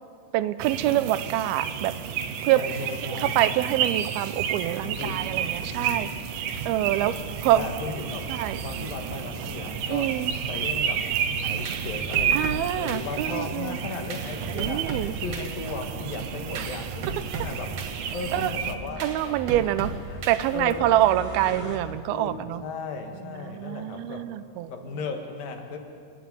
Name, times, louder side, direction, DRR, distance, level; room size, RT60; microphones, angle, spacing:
voice 1, 0.3-1.9 2.4-2.6 3.2-6.1 6.7-7.2 7.4-7.7 8.3-8.6 9.9-10.3 12.3-13.8 14.5-15.2 16.6-16.7 18.3-18.5 19.0-19.9 20.3-22.6 23.2-24.7, right 13 dB, 85° right, 13 dB, 2.6 m, -25 dB
sound 1, 0.6-18.8, right 8 dB, 70° right, 2.2 m, -31 dB
voice 2, 2.6-3.4 4.8-6.2 7.0-7.2 7.5-8.3 8.6-10.1 10.5-11.0 11.4-14.9 15.2-17.8 18.1-21.0 21.9-24.3 24.7-25.8, left 4 dB, 70° left, 4 dB, 3.5 m, -36 dB
sound 2, 4.8-21.8, right 1 dB, 10° right, 1.9 m, -43 dB
sound 3, 11.3-21.0, right 3 dB, 50° right, 2.2 m, -37 dB
27.5 x 11.0 x 9.5 m, 2.1 s
omnidirectional pair, 4.3 m